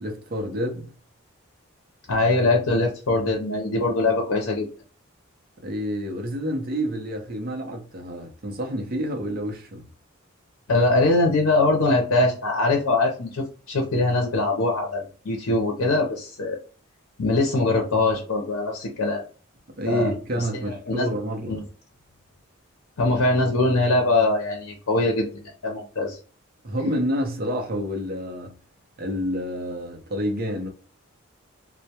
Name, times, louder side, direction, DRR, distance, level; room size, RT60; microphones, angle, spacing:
voice 1, 0.0-0.9 5.6-9.8 19.8-21.6 26.6-28.6 29.0-30.7, equal, 45° right, 0.5 m, -28 dB
voice 2, 2.1-4.7 10.7-16.6 17.2-19.2 19.9-20.1 20.5-21.1 21.5-21.6 23.0-25.3 25.6-26.2, left 2 dB, 85° left, 0.6 m, -22 dB
2.2 x 2.0 x 2.7 m
head